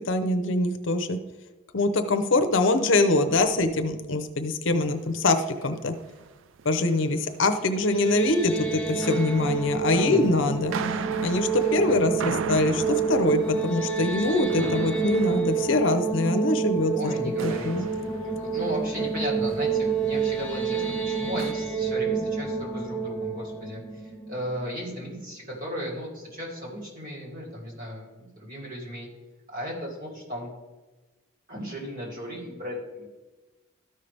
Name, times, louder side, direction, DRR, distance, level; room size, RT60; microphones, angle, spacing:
voice 1, 0.1-1.2 1.7-5.9 6.6-10.7 11.2-17.1 17.4-17.8, left 2 dB, 65° left, 8 dB, 0.7 m, -24 dB
sound 1, 4.7-4.9 5.3-5.6 5.9-7.7 7.9-8.3 8.9-17.1 17.4-19.2 19.5-19.9 20.1-21.5, right 6 dB, 70° right, 0.4 m, -38 dB
sound 2, 7.7-24.8, right 5 dB, 10° left, 0.8 m, -29 dB
voice 2, 9.9-10.3 17.0-17.7 18.4-28.1 28.4-29.1 29.5-30.5 31.5-33.1, equal, 40° right, -3 dB, 2.8 m, -35 dB
13.5 x 5.6 x 3.4 m, 1.2 s
head